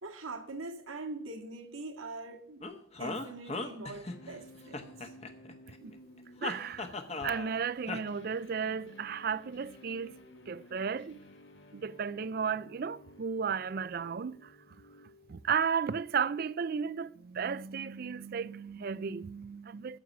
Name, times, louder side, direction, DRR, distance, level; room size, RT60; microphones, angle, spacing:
voice 1, 0.0-2.7 3.0-5.1, right 2 dB, 90° right, 2.0 m, -43 dB
sound 1, 2.6-4.4 4.7-5.8 6.4-7.6 7.9-8.0, left 3 dB, 30° left, 1.0 m, -38 dB
sound 2, 4.1-16.0, left 1 dB, 60° left, 1.5 m, -55 dB
voice 2, 6.4-10.2 10.5-11.2 11.7-14.5 15.3-20.0, right 6 dB, 45° right, 0.4 m, -34 dB
9.4 x 7.4 x 9.2 m
head